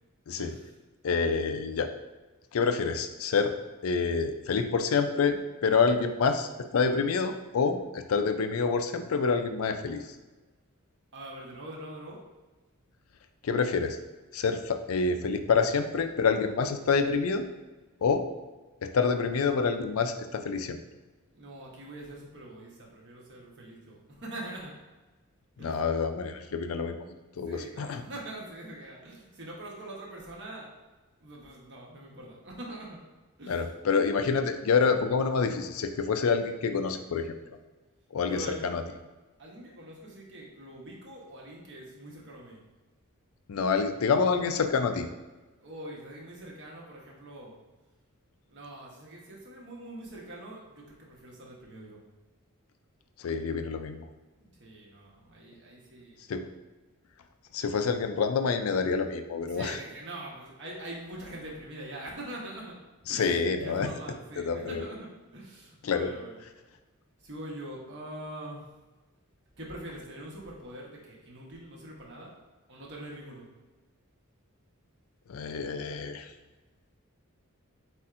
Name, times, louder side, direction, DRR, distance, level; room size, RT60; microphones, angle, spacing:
voice 1, 1.0-1.9 2.5-3.5 3.8-10.0 13.4-14.0 14.3-17.5 18.0-18.2 18.8-20.8 25.6-27.0 27.4-28.0 33.5-37.3 38.1-38.8 43.5-45.1 53.2-54.1 56.3-56.4 57.5-59.8 63.1-63.9 64.4-64.8 65.8-66.1 75.3-76.3, left 5 dB, 75° left, 8 dB, 0.4 m, -27 dB
voice 2, 11.1-12.2 21.3-24.7 25.6-25.8 27.5-30.7 31.2-33.0 33.4-33.6 38.2-38.6 39.4-42.6 45.6-47.5 48.5-52.0 54.4-56.2 59.5-62.8 63.1-63.3 63.6-66.4 67.2-68.6 69.6-72.3 72.7-73.5, right 1 dB, 55° right, -2 dB, 1.1 m, -43 dB
4.4 x 4.2 x 2.5 m, 1.2 s
head